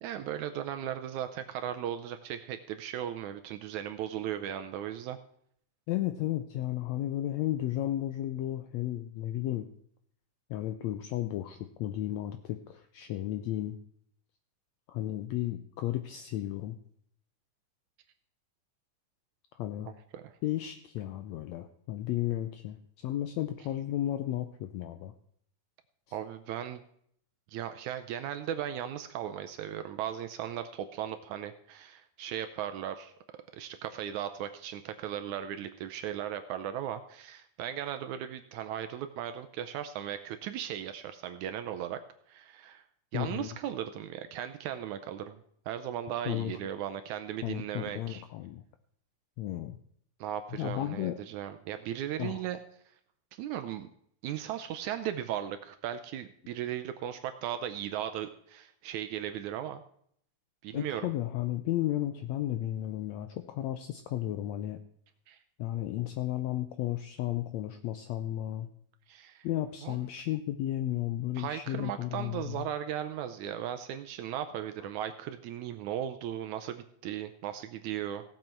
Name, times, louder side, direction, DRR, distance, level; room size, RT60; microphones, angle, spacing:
voice 1, 0.0-5.2 20.1-20.3 26.1-26.8 27.5-33.1 33.5-42.0 42.3-42.8 43.1-48.2 50.2-52.6 53.3-53.9 54.2-59.8 60.6-61.1 65.3-65.4 69.1-69.5 69.8-70.1 71.4-78.2, right 10 dB, 75° right, 9 dB, 1.8 m, -37 dB
voice 2, 5.9-9.7 10.5-13.8 14.9-16.8 19.5-19.9 20.4-25.1 43.1-43.5 46.3-46.5 47.4-48.6 49.4-49.8 50.5-51.2 52.2-52.4 60.7-64.8 65.6-68.7 69.4-72.6, left 13 dB, 85° left, 9 dB, 1.5 m, -33 dB
16.5 x 7.7 x 4.5 m, 0.66 s
omnidirectional pair, 3.8 m